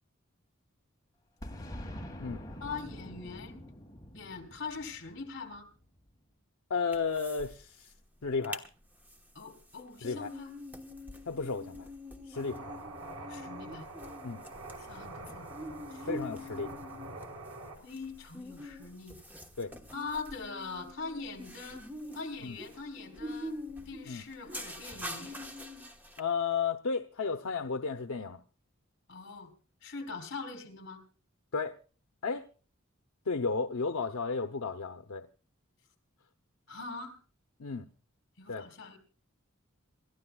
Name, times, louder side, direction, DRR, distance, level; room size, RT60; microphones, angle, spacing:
Boom, 1.4-6.1, equal, 20° left, 1.9 m, -45 dB
voice 1, 2.6-3.7 4.1-5.7 9.3-10.6 13.3-13.9 14.8-15.5 15.9-16.1 17.8-19.2 19.9-21.8 22.1-23.6 23.9-25.4 29.1-29.5 29.8-31.0 36.7-37.2 38.4-39.0, left 4 dB, 60° left, 3.7 m, -42 dB
voice 2, 6.7-7.9 8.2-8.6 10.0-10.3 11.3-11.9 12.3-12.7 14.2-14.4 16.0-16.7 19.6-19.7 22.4-22.6 24.1-24.2 26.2-28.4 31.5-31.7 32.2-32.4 33.3-35.3 37.6-37.9 38.5-38.7, left 5 dB, 80° left, 0.7 m, -33 dB
sound 1, 6.9-7.5 7.8-7.9 8.3-8.7 9.1-26.2, left 1 dB, 10° right, 1.3 m, -44 dB
sound 2, 12.3-17.8, right 2 dB, 90° right, 3.8 m, -45 dB
27.5 x 13.5 x 2.3 m
head